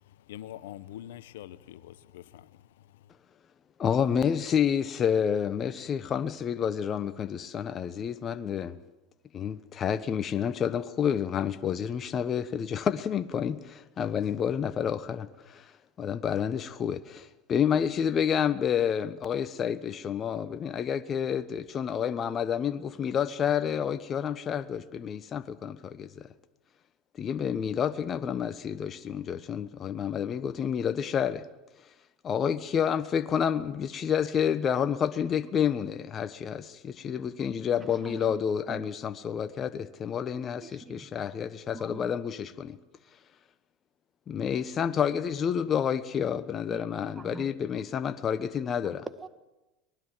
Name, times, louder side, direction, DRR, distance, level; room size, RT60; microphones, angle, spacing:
voice 1, 0.0-3.1, left 12 dB, 75° left, 1.0 m, -45 dB
voice 2, 3.8-8.8 9.3-15.7 16.0-26.3 27.2-31.5 32.2-42.8 44.3-49.1, left 8 dB, 35° left, 1.2 m, -29 dB
voice 3, 37.7-38.9 40.3-41.1 41.7-42.2 46.7-47.5 48.8-49.3, right 4 dB, 20° right, 1.8 m, -45 dB
24.5 x 20.0 x 7.5 m
hypercardioid pair, 90°, 0 cm